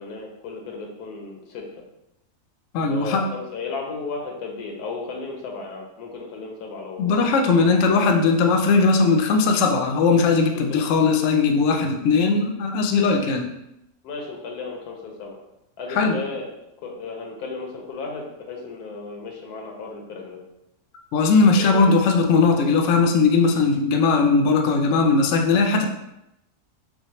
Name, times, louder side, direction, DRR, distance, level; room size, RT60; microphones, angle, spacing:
voice 1, 0.0-1.7 2.8-7.3 10.5-10.8 14.0-15.4 15.8-16.4 16.8-20.4 21.5-21.9, left 4 dB, 85° left, 1 dB, 1.3 m, -34 dB
voice 2, 2.7-3.3 7.0-13.5 15.9-16.2 21.1-25.9, left 4 dB, 65° left, 3 dB, 0.8 m, -19 dB
6.2 x 2.1 x 2.9 m, 0.86 s
omnidirectional pair, 1.6 m